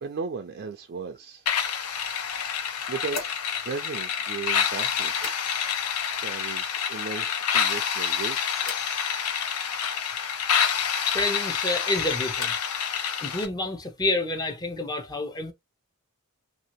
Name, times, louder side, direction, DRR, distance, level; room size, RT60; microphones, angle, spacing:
voice 1, 0.0-1.5 2.5-5.3 6.2-8.6, right 5 dB, 50° right, 0.4 m, -36 dB
sound 1, 1.5-13.5, left 7 dB, 85° left, 0.6 m, -28 dB
sound 2, 3.1-5.9 6.2-6.8 7.1-7.7 8.6-8.9 11.3-12.8 13.1-13.7, left 3 dB, 65° left, 1.5 m, -43 dB
voice 2, 11.1-12.5 13.2-15.5, left 2 dB, 20° left, 0.5 m, -28 dB
2.8 x 2.7 x 2.8 m
head